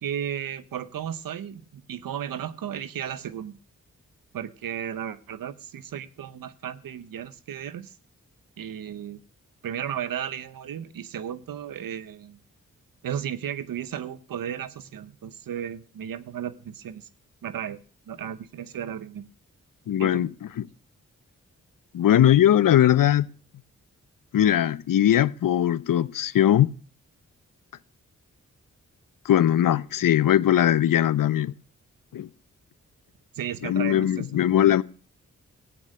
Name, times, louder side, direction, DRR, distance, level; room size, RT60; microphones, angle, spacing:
voice 1, 0.0-3.6 4.3-7.9 8.6-9.2 9.6-12.4 13.0-17.1 17.4-17.8 18.1-19.3 20.0-20.2 33.3-34.3, right 9 dB, 85° right, 0.9 m, -34 dB
voice 2, 19.9-20.3 20.6-20.7 21.9-23.3 24.3-26.7 29.2-31.5 32.1-32.3 33.6-34.8, left 11 dB, 75° left, 0.7 m, -20 dB
14.5 x 8.6 x 6.5 m
cardioid pair, 40°, 33 cm